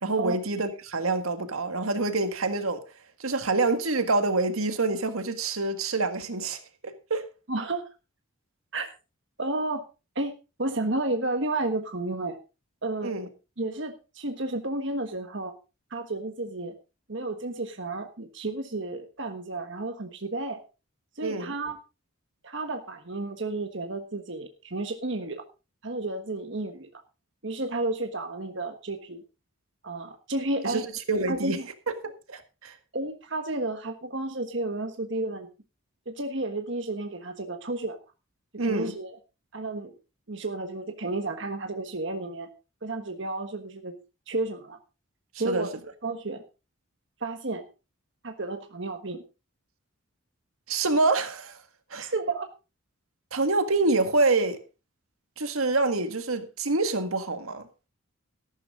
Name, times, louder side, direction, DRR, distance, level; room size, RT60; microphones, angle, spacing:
voice 1, 0.0-2.8 3.2-7.2 13.0-13.3 21.2-21.5 30.6-31.6 32.0-32.8 38.6-39.0 45.4-45.7 50.7-51.6 51.9-52.1 53.3-54.6 55.4-57.7, right 3 dB, 85° right, 1.8 m, -26 dB
voice 2, 7.5-7.9 8.7-8.9 9.4-9.8 10.1-12.4 12.8-13.1 13.6-15.5 15.9-16.7 17.1-20.6 21.2-21.8 22.4-25.4 25.8-26.9 27.4-29.2 29.8-30.8 31.3-31.7 32.9-35.5 36.1-38.0 38.5-39.2 39.5-39.9 40.3-42.5 42.8-44.0 44.3-44.8 45.4-45.7 46.0-46.4 47.2-47.6 48.2-49.2 52.0-52.5, right 2 dB, 60° right, 1.4 m, -32 dB
13.5 x 12.0 x 3.7 m
head